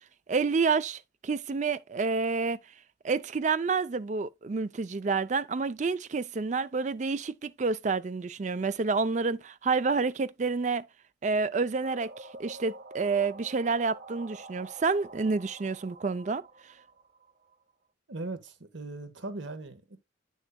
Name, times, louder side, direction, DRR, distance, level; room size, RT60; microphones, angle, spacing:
voice 1, 0.3-2.6 3.0-10.9 11.2-16.5, right 4 dB, 40° right, 0.4 m, -29 dB
sound 1, 11.8-17.6, right 2 dB, 55° right, 1.0 m, -47 dB
voice 2, 18.1-20.0, right 2 dB, 85° right, 1.3 m, -39 dB
10.0 x 6.3 x 2.2 m
head